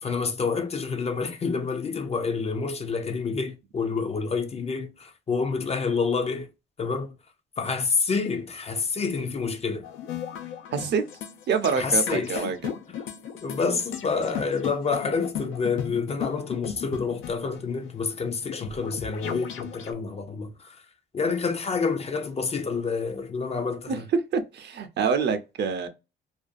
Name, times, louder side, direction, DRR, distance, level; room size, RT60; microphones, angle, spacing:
voice 1, 0.0-6.5 6.8-7.2 7.6-9.9 11.8-12.5 12.9-13.0 13.4-20.9 21.1-24.1, left 4 dB, 30° left, 0.4 m, -28 dB
sound 1, 9.8-19.9, left 9 dB, 90° left, 0.5 m, -36 dB
voice 2, 10.7-11.0 11.5-12.8 23.9-24.0 24.3-25.9, right 6 dB, 60° right, 0.6 m, -26 dB
2.5 x 2.2 x 2.4 m
cardioid pair, 90°, 20 cm